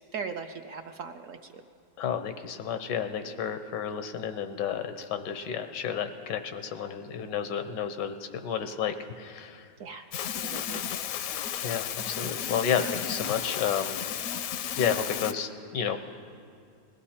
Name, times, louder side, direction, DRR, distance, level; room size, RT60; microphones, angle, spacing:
voice 1, 0.0-1.4 9.8-10.1 10.4-10.8, right 5 dB, 65° right, 5 dB, 0.8 m, -38 dB
voice 2, 2.0-8.1 8.4-9.6 11.6-14.0 14.7-16.0, left 8 dB, 90° left, 9 dB, 1.5 m, -31 dB
sound 1, 10.1-15.3, left 9 dB, 70° left, 0.8 m, -33 dB
20.5 x 15.0 x 4.3 m, 2.3 s
omnidirectional pair, 1.8 m